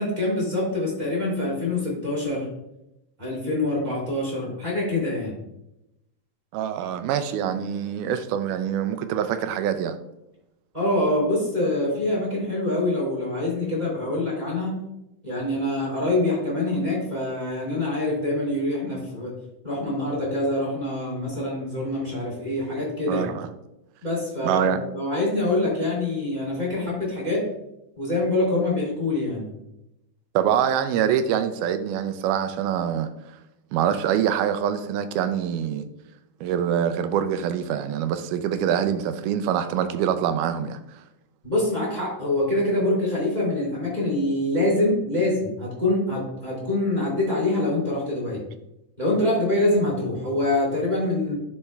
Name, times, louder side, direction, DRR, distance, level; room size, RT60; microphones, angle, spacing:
voice 1, 0.0-2.5 3.2-5.3 10.7-14.7 15.2-19.3 19.6-23.3 24.0-27.4 28.0-29.5 41.4-48.4 49.0-51.4, left 2 dB, 15° right, -5 dB, 2.3 m, -25 dB
voice 2, 6.5-10.0 23.1-23.5 24.4-24.8 30.4-33.1 33.7-35.9 36.4-40.8, right 9 dB, 85° right, 10 dB, 2.1 m, -25 dB
11.5 x 4.3 x 2.3 m, 0.88 s
omnidirectional pair, 3.6 m